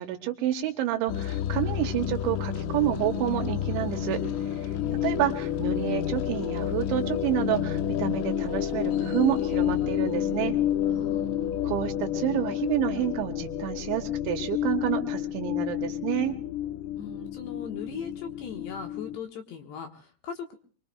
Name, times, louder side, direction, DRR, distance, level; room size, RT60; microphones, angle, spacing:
voice 1, 0.0-4.2 5.0-10.5 11.6-16.4, right 12 dB, 75° right, 6 dB, 3.0 m, -29 dB
sound 1, 1.1-19.2, left 10 dB, 85° left, 3.7 m, -29 dB
voice 2, 4.7-5.3 10.9-11.6 17.0-20.6, left 6 dB, 70° left, 3 dB, 3.0 m, -40 dB
24.5 x 23.5 x 2.3 m, 0.43 s
omnidirectional pair, 5.8 m